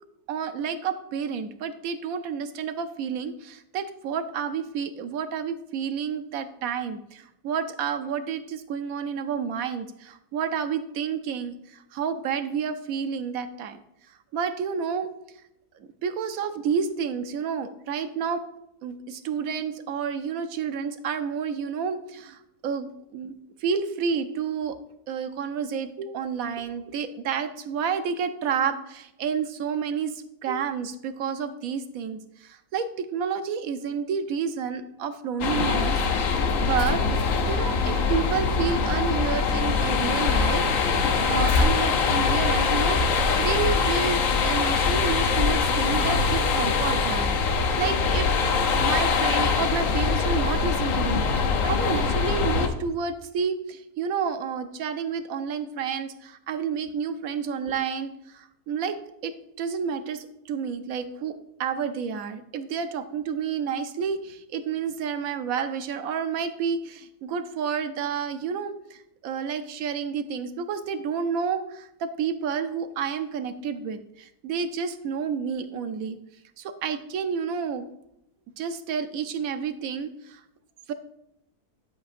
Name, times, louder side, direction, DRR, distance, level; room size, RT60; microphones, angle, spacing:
voice 1, 0.3-13.8 14.3-15.1 16.0-18.4 18.8-23.3 23.6-24.8 25.1-36.0 36.4-48.3 48.8-76.2 76.6-77.9 78.6-80.4 80.9-81.0, right 6 dB, 65° right, 10 dB, 1.0 m, -30 dB
sound 1, 35.4-52.7, left 5 dB, 60° left, 1.1 m, -23 dB
11.0 x 7.8 x 2.5 m, 0.81 s
omnidirectional pair, 1.7 m